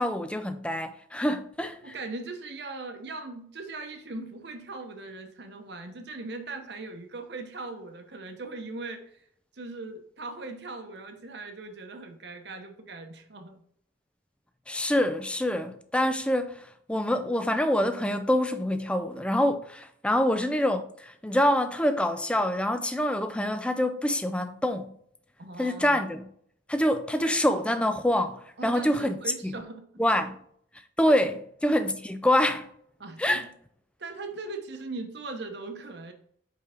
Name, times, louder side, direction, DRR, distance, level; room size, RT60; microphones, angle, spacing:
voice 1, 0.0-1.9 14.7-24.9 25.6-26.3 26.7-29.2 29.4-29.6 30.0-30.4 31.0-31.4 31.6-32.7 33.2-33.5, left 1 dB, 5° left, 0.4 m, -26 dB
voice 2, 1.8-9.2 9.5-13.6 25.4-26.0 28.6-29.8 31.1-31.2 33.0-33.5 34.0-36.1, right 3 dB, 60° right, 0.9 m, -39 dB
5.6 x 4.7 x 3.7 m
head